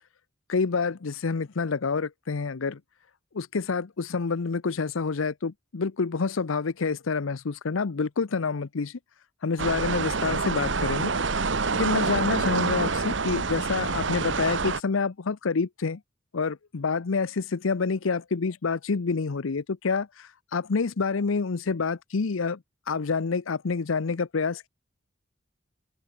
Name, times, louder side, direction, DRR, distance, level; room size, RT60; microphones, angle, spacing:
voice 1, 0.5-2.8 3.3-9.0 9.4-11.1 11.7-16.0 16.3-22.6 22.9-24.7, left 4 dB, 85° left, 0.7 m, -28 dB
sound 1, 9.6-14.8, right 4 dB, 65° right, 1.2 m, -27 dB
open air
head